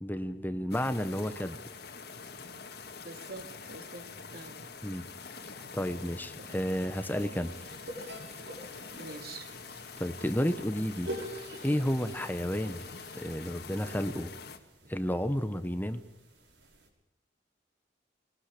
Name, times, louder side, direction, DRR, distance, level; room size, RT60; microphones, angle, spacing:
voice 1, 0.0-1.6 4.8-5.1 5.5-7.5 10.0-11.1 11.6-12.8 13.1-14.3 14.9-16.0, equal, 10° left, 11 dB, 1.0 m, -31 dB
sound 1, 0.7-14.6, left 5 dB, 60° left, 2.2 m, -45 dB
voice 2, 3.0-4.1 4.3-4.7 6.4-6.6 8.9-9.5, right 3 dB, 55° right, 7 dB, 2.5 m, -45 dB
sound 2, 6.6-16.9, right 1 dB, 85° right, 6.2 m, -47 dB
22.0 x 20.0 x 8.5 m, 0.77 s
head